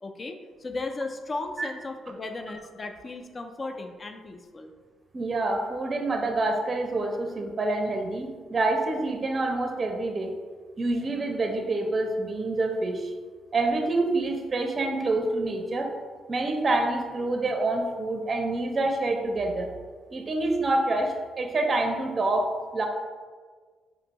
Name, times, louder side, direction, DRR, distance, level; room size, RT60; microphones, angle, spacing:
voice 1, 0.0-4.7, left 2 dB, 35° left, 5 dB, 0.4 m, -36 dB
voice 2, 5.1-10.3 10.8-13.1 13.5-15.9 16.3-19.7 20.1-22.9, right 2 dB, 35° right, 3 dB, 0.5 m, -27 dB
5.2 x 2.6 x 2.9 m, 1.5 s
cardioid pair, 90°, 0 cm